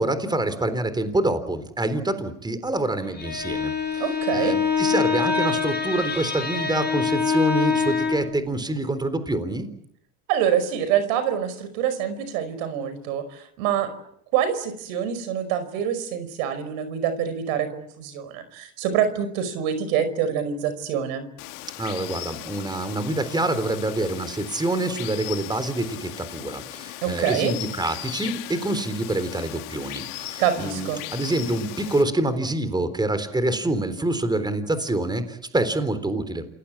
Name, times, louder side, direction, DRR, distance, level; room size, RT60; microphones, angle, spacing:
voice 1, 0.0-4.0 4.3-9.7 21.8-36.5, right 2 dB, 10° right, 11 dB, 3.8 m, -26 dB
Bowed string instrument, 3.0-8.4, left 6 dB, 25° left, 7.0 m, -25 dB
voice 2, 4.0-4.6 10.3-13.9 14.3-21.3 27.0-27.5 30.4-31.0, right 9 dB, 85° right, 12 dB, 5.1 m, -25 dB
Water, 21.4-32.0, left 17 dB, 85° left, 2.2 m, -37 dB
28.0 x 19.5 x 8.7 m, 0.75 s
supercardioid pair, 110°, 41 cm